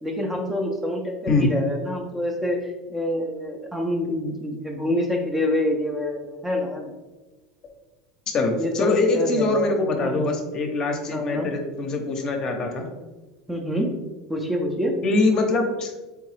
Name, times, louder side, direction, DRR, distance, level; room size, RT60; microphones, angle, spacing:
voice 1, 0.0-6.9 8.5-9.7 10.0-10.3 11.1-11.5 13.5-13.9 14.3-14.9, left 1 dB, 10° right, 1 dB, 0.5 m, -27 dB
voice 2, 8.3-12.9 15.0-15.9, left 3 dB, 35° left, 3 dB, 0.7 m, -23 dB
3.7 x 3.5 x 3.2 m, 1.2 s
supercardioid pair, 125°, 2 cm